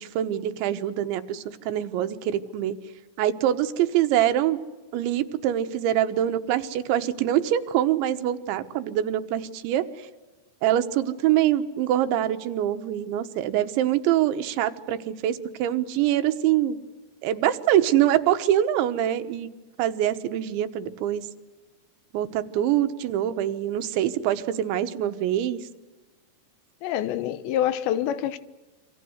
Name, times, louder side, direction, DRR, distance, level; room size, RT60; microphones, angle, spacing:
voice 1, 0.0-2.8 3.2-4.6 4.9-9.9 10.6-16.8 17.2-19.5 19.8-21.3 22.1-25.6, right 11 dB, 90° right, 3.5 m, -24 dB
voice 2, 26.8-28.4, left 11 dB, 80° left, 3.2 m, -26 dB
27.5 x 25.0 x 8.0 m
omnidirectional pair, 5.1 m